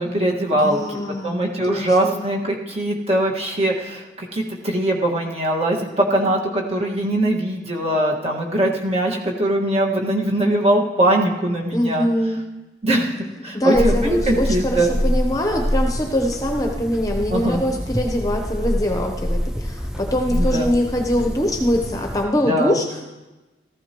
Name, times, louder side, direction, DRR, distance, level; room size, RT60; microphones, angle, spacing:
voice 1, 0.0-12.1 12.8-13.1 13.4-14.9 17.3-17.6 20.3-20.7 22.5-22.8, right 1 dB, 35° right, -1 dB, 1.7 m, -21 dB
voice 2, 0.5-2.3 11.7-12.4 13.4-23.0, equal, 20° left, 2 dB, 0.9 m, -23 dB
sound 1, 13.7-22.2, equal, 5° right, 0.5 m, -26 dB
15.0 x 14.5 x 3.0 m, 1.1 s
head